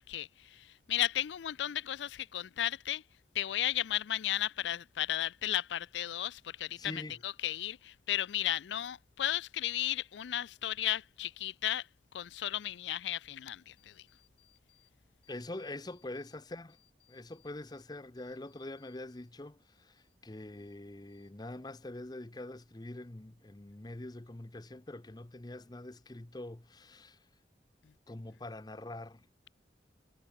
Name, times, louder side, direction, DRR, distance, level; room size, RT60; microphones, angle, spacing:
voice 1, 0.1-3.0 3.3-11.9 12.1-14.1, left 12 dB, 80° left, 0.4 m, -34 dB
voice 2, 6.8-7.2 15.3-16.8 17.1-27.2 28.1-29.3, left 2 dB, 20° left, 0.7 m, -44 dB
sound 1, 14.1-14.9 15.2-16.4 16.7-19.3 19.6-20.8 21.1-21.7, left 14 dB, 65° left, 4.4 m, -70 dB
head